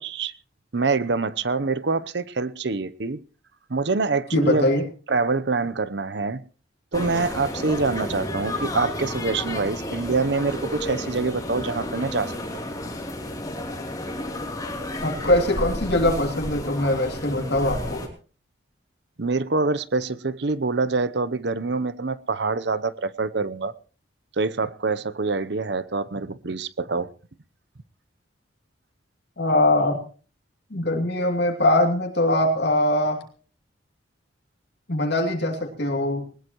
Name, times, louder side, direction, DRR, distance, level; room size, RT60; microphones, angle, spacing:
voice 1, 0.7-3.2 3.7-4.7 5.1-6.4 6.9-12.3 19.2-23.7 24.4-27.1, right 3 dB, 60° right, 0.8 m, -25 dB
voice 2, 4.3-4.8 15.0-18.0 29.4-30.0 30.7-33.2 34.9-36.3, left 1 dB, 60° left, 2.7 m, -22 dB
sound 1, 6.9-18.1, left 1 dB, 20° left, 3.1 m, -32 dB
20.0 x 20.0 x 3.0 m
head